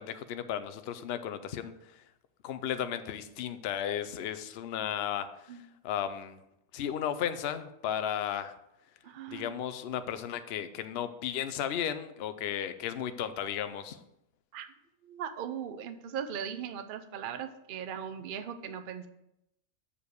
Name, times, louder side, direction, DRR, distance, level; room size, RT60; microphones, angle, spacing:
voice 1, 0.0-1.7 2.4-5.6 5.8-6.4 6.7-8.5 9.3-14.0, left 9 dB, 60° left, 10 dB, 0.7 m, -34 dB
voice 2, 9.0-9.6 14.5-14.7 15.0-19.1, right 8 dB, 55° right, 7 dB, 0.6 m, -39 dB
6.8 x 5.0 x 6.3 m, 0.83 s
omnidirectional pair, 1.6 m